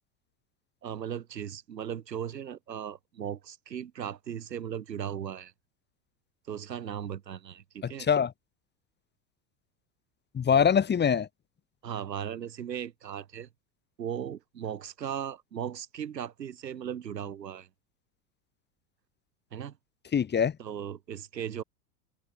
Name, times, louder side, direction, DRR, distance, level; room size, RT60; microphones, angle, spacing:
voice 1, 0.8-5.5 6.5-8.1 10.5-10.6 11.8-13.5 14.0-17.7 19.5-19.8 20.6-21.6, right 9 dB, 85° right, 3.6 m, -37 dB
voice 2, 7.8-8.3 10.3-11.3 20.1-20.5, left 7 dB, 20° left, 1.5 m, -24 dB
open air
hypercardioid pair, 95°, 48 cm